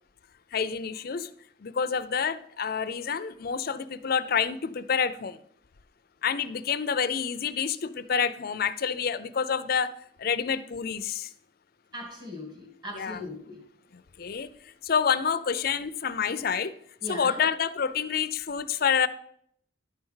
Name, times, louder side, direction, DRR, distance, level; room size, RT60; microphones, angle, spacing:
voice 1, 0.5-1.3 1.6-5.4 6.2-9.9 10.2-11.3 12.9-13.2 13.9-14.5 14.8-16.7 17.1-19.1, left 6 dB, 50° left, 0.5 m, -28 dB
voice 2, 11.9-13.6 17.0-17.4, left 1 dB, 20° right, 2.4 m, -39 dB
11.5 x 4.5 x 5.6 m
head